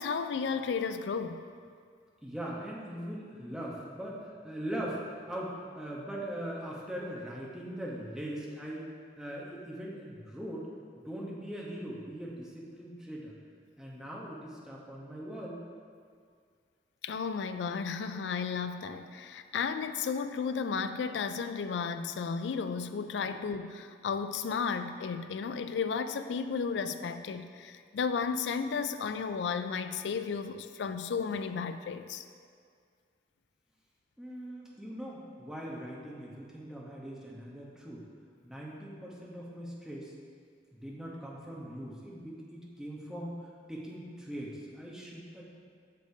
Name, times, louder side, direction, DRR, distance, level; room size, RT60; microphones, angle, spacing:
voice 1, 0.0-1.4 17.0-32.2, left 5 dB, 80° left, 9 dB, 0.3 m, -33 dB
voice 2, 2.2-10.7 11.0-13.3 13.8-15.6 23.2-23.3 34.2-38.0 38.4-40.1 40.7-45.4, right 1 dB, 5° right, -5 dB, 0.9 m, -41 dB
8.2 x 6.4 x 2.7 m, 2.1 s
head